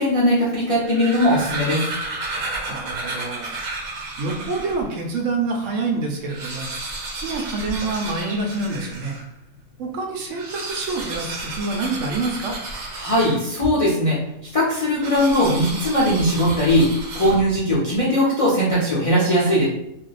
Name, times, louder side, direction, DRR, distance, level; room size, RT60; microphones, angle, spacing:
voice 1, 0.0-1.8 13.0-14.2 14.5-19.6, equal, 40° left, -8 dB, 0.5 m, -19 dB
sound 1, 0.8-4.9 5.4-5.5 5.7-5.8 6.2-9.3 10.2-13.7 15.0-17.7, right 2 dB, 85° right, 1.2 m, -32 dB
voice 2, 2.7-3.6 4.0-6.7 7.2-9.2 9.8-12.6, right 3 dB, 70° right, 2 dB, 0.9 m, -27 dB
2.5 x 2.1 x 3.9 m, 0.84 s
omnidirectional pair, 1.5 m